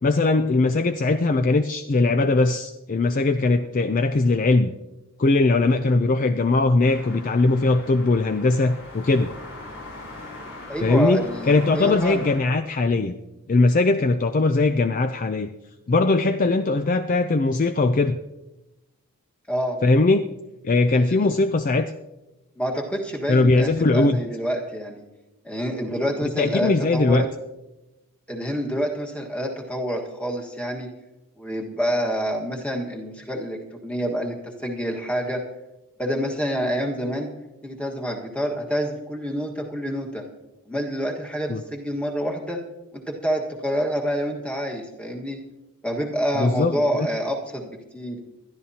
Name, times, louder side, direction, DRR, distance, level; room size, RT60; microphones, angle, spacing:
voice 1, 0.0-4.7 5.2-9.3 10.8-13.1 13.5-15.5 15.9-18.2 19.8-20.3 20.6-21.9 23.3-24.2 26.2-27.2 41.5-41.6 46.4-47.1, left 3 dB, 35° left, 9 dB, 0.4 m, -20 dB
sound 1, 6.8-12.4, left 2 dB, 65° left, 4.7 m, -40 dB
voice 2, 10.7-12.3 19.5-19.8 20.9-21.3 22.6-25.0 25.4-27.3 28.3-30.9 31.4-35.4 36.0-37.3 37.6-40.2 40.7-42.6 42.9-45.4 45.8-48.2, equal, 5° left, 0 dB, 1.5 m, -27 dB
21.0 x 12.5 x 2.8 m, 0.99 s
head